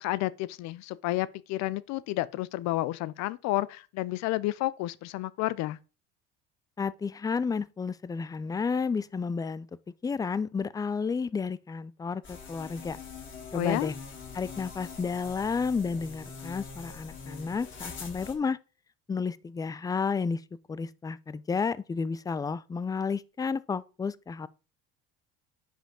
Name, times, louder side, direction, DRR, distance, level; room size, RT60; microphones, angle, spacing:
voice 1, 0.0-5.8 13.5-13.9, left 17 dB, 65° left, 0.5 m, -31 dB
voice 2, 6.8-9.7 10.0-13.0 13.5-13.9 14.3-18.6 19.1-20.4 20.7-24.5, left 5 dB, 10° left, 0.4 m, -31 dB
sound 1, 12.2-18.3, left 5 dB, 40° left, 4.3 m, -43 dB
10.0 x 5.2 x 3.7 m
supercardioid pair, 90°, 30 cm